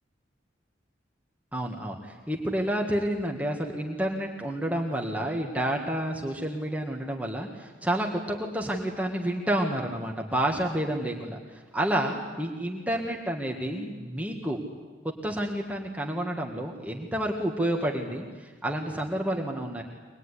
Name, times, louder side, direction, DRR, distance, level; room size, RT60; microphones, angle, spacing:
voice 1, 1.5-14.6 15.2-19.8, right 1 dB, 10° right, 0 dB, 1.8 m, -29 dB
24.5 x 20.0 x 9.9 m, 1.4 s
head